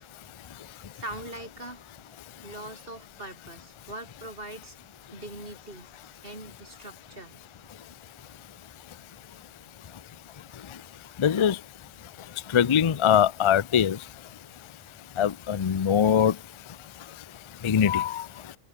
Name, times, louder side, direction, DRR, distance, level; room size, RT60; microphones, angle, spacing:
voice 1, 0.7-1.9 2.4-4.8 5.1-5.9 6.2-7.4, right 1 dB, 45° right, 7.6 m, -42 dB
voice 2, 11.2-11.6 12.5-14.0 15.2-16.3 17.6-18.2, left 8 dB, 55° left, 0.3 m, -22 dB
omnidirectional pair, 1.3 m